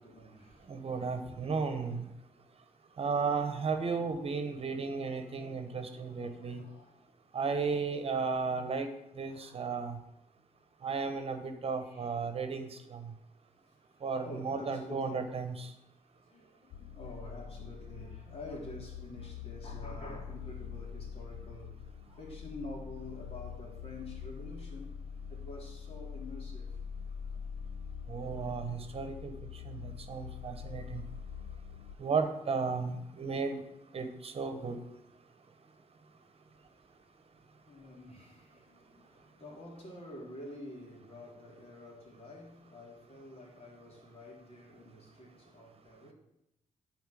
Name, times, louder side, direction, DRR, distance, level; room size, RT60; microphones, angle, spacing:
voice 1, 0.0-1.0 1.2-1.4 5.7-7.0 9.3-9.7 11.5-12.2 14.0-15.4 16.2-21.8 22.0-25.0 25.3-26.7 37.5-46.1, left 1 dB, 50° left, 3.1 m, -48 dB
voice 2, 0.7-2.0 3.0-6.6 7.3-8.9 9.2-10.0 10.8-12.7 12.9-13.0 14.0-15.7 28.1-29.3 29.7-31.0 32.0-33.6 33.9-34.8, right 5 dB, 50° right, 1.1 m, -34 dB
sound 1, 16.7-31.9, left 7 dB, 80° left, 0.6 m, -44 dB
9.4 x 4.5 x 7.6 m
cardioid pair, 90°, 13 cm